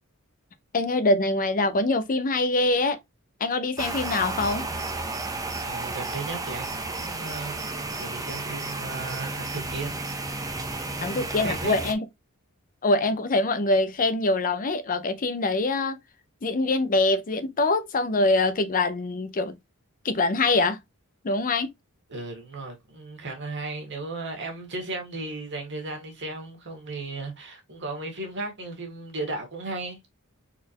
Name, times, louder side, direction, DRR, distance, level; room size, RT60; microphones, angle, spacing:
voice 1, 0.7-3.0 3.4-4.7 11.0-12.0 12.8-16.0 16.4-19.5 20.0-20.8 21.2-21.7, left 2 dB, 40° left, 0.6 m, -24 dB
sound 1, 3.8-11.9, right 2 dB, 15° right, 0.8 m, -32 dB
voice 2, 5.6-10.0 10.8-11.7 22.1-30.0, right 2 dB, 55° right, 1.9 m, -36 dB
4.2 x 4.2 x 2.9 m
head